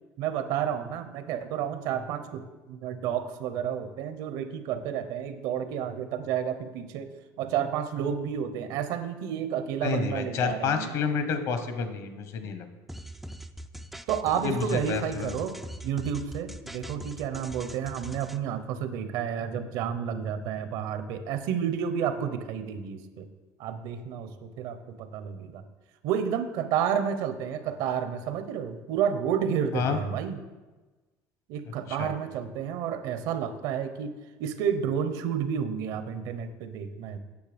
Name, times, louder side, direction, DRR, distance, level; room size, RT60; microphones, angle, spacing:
voice 1, 0.2-7.1 7.4-10.9 14.1-15.5 15.8-23.3 23.6-25.6 26.0-30.4 31.5-37.2, right 8 dB, 65° right, 10 dB, 0.8 m, -30 dB
voice 2, 9.8-12.7 14.4-15.3 29.7-30.0 32.0-32.1, left 5 dB, 50° left, 8 dB, 1.0 m, -29 dB
sound 1, 12.9-18.4, right 1 dB, ahead, 0.3 m, -42 dB
9.5 x 6.7 x 5.1 m, 1.2 s
cardioid pair, 165°, 7 cm